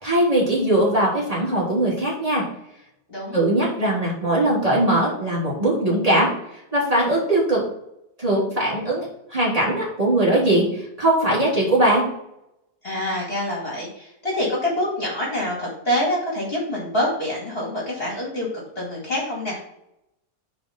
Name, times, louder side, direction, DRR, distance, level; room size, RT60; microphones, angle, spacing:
voice 1, 0.0-2.4 3.3-7.6 8.2-12.0, right 1 dB, 20° right, -7 dB, 3.1 m, -20 dB
voice 2, 3.1-3.4 12.8-19.6, left 1 dB, 35° left, -4 dB, 2.5 m, -26 dB
9.5 x 4.3 x 4.4 m, 0.81 s
omnidirectional pair, 1.7 m